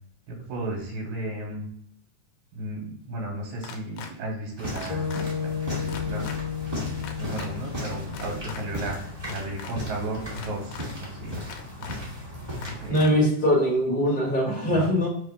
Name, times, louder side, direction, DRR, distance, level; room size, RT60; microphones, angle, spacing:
voice 1, 0.3-1.7 2.5-5.1 5.4-6.2 7.2-11.5 12.8-13.1 14.7-14.9, right 1 dB, 75° right, -1 dB, 2.3 m, -34 dB
sound 1, 3.6-4.1 4.8-5.2 5.9-6.4 7.0-7.5 8.1-8.6 9.2-9.7 10.4-10.9 11.5-12.0 12.6-13.1, left 7 dB, 85° left, 2.0 m, -40 dB
sound 2, 4.6-12.9, equal, 15° right, 1.2 m, -36 dB
sound 3, 4.9-9.3, left 8 dB, 70° left, 1.7 m, -33 dB
voice 2, 12.9-15.1, equal, 20° left, -3 dB, 1.5 m, -22 dB
4.2 x 3.6 x 3.5 m, 0.69 s
omnidirectional pair, 3.3 m